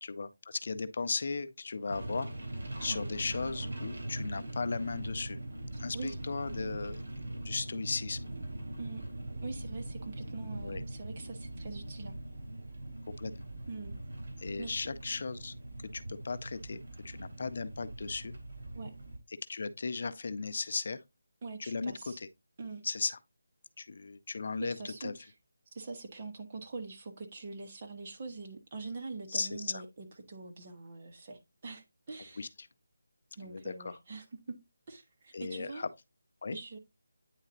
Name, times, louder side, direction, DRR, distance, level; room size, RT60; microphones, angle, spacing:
voice 1, 0.0-2.3 2.8-5.4 5.8-7.0 7.4-8.2 10.6-10.8 13.1-13.3 14.4-15.5 15.9-18.3 19.5-21.0 21.6-22.3 22.8-23.2 23.8-25.1 29.3-29.8 32.4-32.7 33.4-34.0 35.3-35.9 36.4-36.6, left 4 dB, 50° left, 0.5 m, -36 dB
sound 1, 1.9-19.2, right 1 dB, 65° right, 2.7 m, -41 dB
voice 2, 9.4-12.1 13.7-14.0 14.6-14.9 18.7-18.9 21.4-22.2 22.6-22.8 24.6-25.3 25.7-32.5 33.4-34.3 34.9-35.9 36.5-36.8, right 3 dB, 35° right, 1.1 m, -44 dB
9.1 x 4.0 x 2.6 m
figure-of-eight pair, 170°, 0 cm